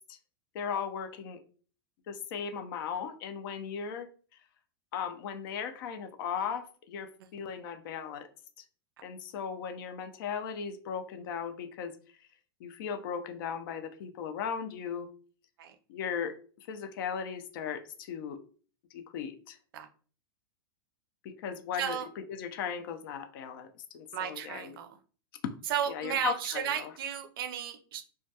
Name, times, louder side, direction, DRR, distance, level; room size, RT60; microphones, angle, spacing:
voice 1, 0.5-1.4 2.1-4.1 4.9-8.3 9.0-11.9 12.2-12.3 12.6-15.1 15.9-18.4 18.9-19.6 21.2-24.8 25.4-25.6 25.9-26.9, left 7 dB, 60° left, 0.4 m, -37 dB
voice 2, 21.8-22.1 24.1-25.0 25.7-28.0, right 9 dB, 70° right, 0.4 m, -34 dB
2.2 x 2.1 x 2.7 m
supercardioid pair, 145°, 12 cm